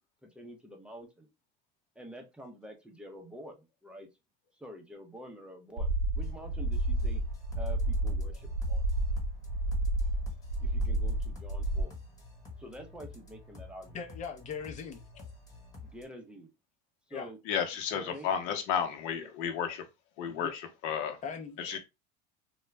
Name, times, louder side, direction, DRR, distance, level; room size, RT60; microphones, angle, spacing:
voice 1, 0.3-1.3 2.0-4.1 4.6-7.2 7.5-8.9 10.6-11.9 12.6-14.0 15.8-16.5 17.1-17.4 17.9-18.3 19.1-19.3 20.3-20.5, equal, 5° right, 0.6 m, -47 dB
sound 1, 5.8-11.8, right 1 dB, 85° right, 0.9 m, -30 dB
sound 2, 6.2-16.1, left 3 dB, 20° left, 1.3 m, -50 dB
voice 2, 13.9-15.0 17.1-17.3 21.2-21.8, left 6 dB, 35° left, 0.7 m, -40 dB
voice 3, 17.5-19.8 20.2-21.2 21.6-21.8, left 8 dB, 65° left, 0.8 m, -32 dB
2.4 x 2.1 x 3.1 m
supercardioid pair, 120°, 21 cm